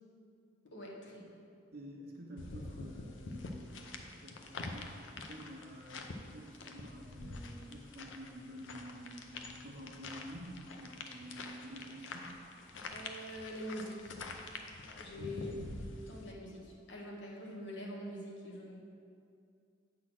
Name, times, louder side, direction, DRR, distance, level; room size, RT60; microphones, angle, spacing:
voice 1, 0.6-1.2 12.9-14.1 15.0-15.5 16.1-18.8, equal, 70° left, -2 dB, 1.3 m, -44 dB
voice 2, 1.7-3.7 4.1-12.4 15.1-15.6, equal, 55° right, 0 dB, 1.0 m, -50 dB
sound 1, 2.4-16.3, left 3 dB, 85° left, 0.6 m, -46 dB
7.4 x 3.9 x 6.1 m, 2.4 s
head